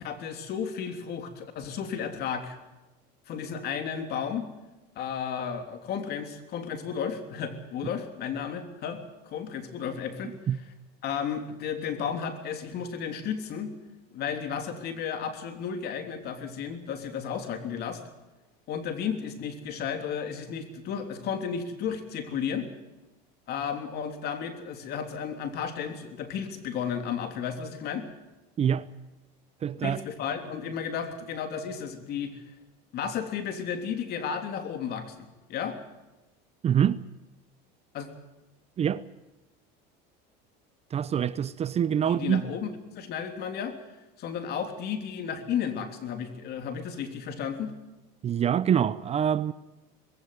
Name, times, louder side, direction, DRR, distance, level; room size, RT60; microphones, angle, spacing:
voice 1, 0.0-2.6 3.3-4.5 4.9-10.3 11.0-13.7 14.1-18.0 18.7-22.7 23.5-28.1 29.8-32.4 32.9-35.8 37.9-38.1 42.0-43.8 44.2-47.7, left 7 dB, 55° left, 3.2 m, -33 dB
voice 2, 28.6-28.9 29.6-30.0 36.6-37.0 38.8-39.0 40.9-42.4 48.2-49.5, right 9 dB, 30° right, 0.7 m, -25 dB
21.0 x 16.0 x 9.5 m
supercardioid pair, 115°, 20 cm